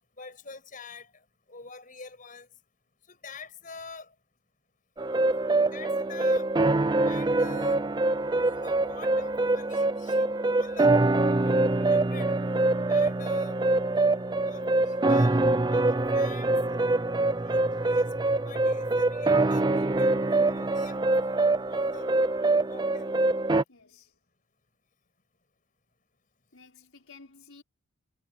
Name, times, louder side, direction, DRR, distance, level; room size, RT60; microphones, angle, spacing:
voice 1, 0.2-2.5 3.1-4.1 5.7-6.5 7.1-7.8 8.4-10.9 11.4-12.3 12.9-13.6 14.5-15.4 15.7-16.6 17.4-22.1 22.7-23.1, left 4 dB, 40° left, 6.2 m, -47 dB
sound 1, 5.0-23.6, right 2 dB, 20° right, 0.5 m, -24 dB
voice 2, 23.7-24.2 26.5-27.6, left 4 dB, 80° left, 5.3 m, -53 dB
head